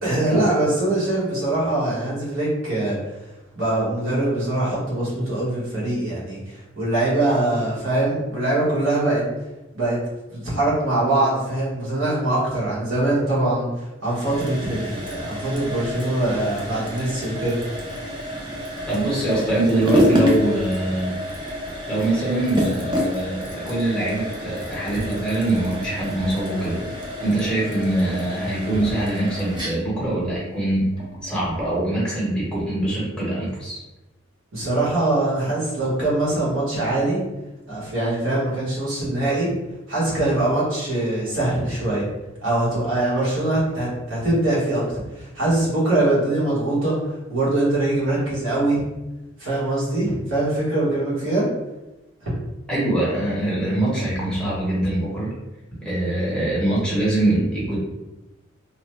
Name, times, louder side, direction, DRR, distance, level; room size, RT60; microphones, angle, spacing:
voice 1, 0.0-3.0 3.5-9.2 9.7-10.0 10.3-17.6 34.5-37.2 37.7-39.5 39.9-42.0 42.4-47.0 47.3-48.8 49.4-51.4 52.2-52.3, right 2 dB, 80° right, -7 dB, 1.3 m, -23 dB
sound 1, 14.0-31.8, left 1 dB, 25° right, 0.5 m, -28 dB
voice 2, 18.9-21.2 21.9-26.8 27.2-30.9 31.2-33.8 52.7-55.3 55.8-57.8, right 1 dB, 5° left, -7 dB, 0.9 m, -23 dB
2.9 x 2.1 x 3.0 m, 1.0 s
head